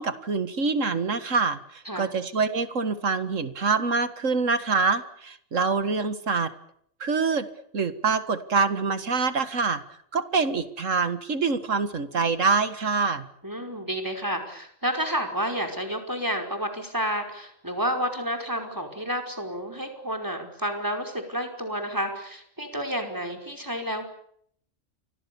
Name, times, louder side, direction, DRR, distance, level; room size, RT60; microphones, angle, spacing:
voice 1, 0.0-6.5 7.0-7.5 7.7-9.8 10.1-13.3, right 4 dB, 75° right, 11 dB, 2.2 m, -25 dB
voice 2, 13.4-24.0, equal, 15° right, 5 dB, 5.1 m, -30 dB
30.0 x 25.0 x 7.1 m, 0.68 s
omnidirectional pair, 1.3 m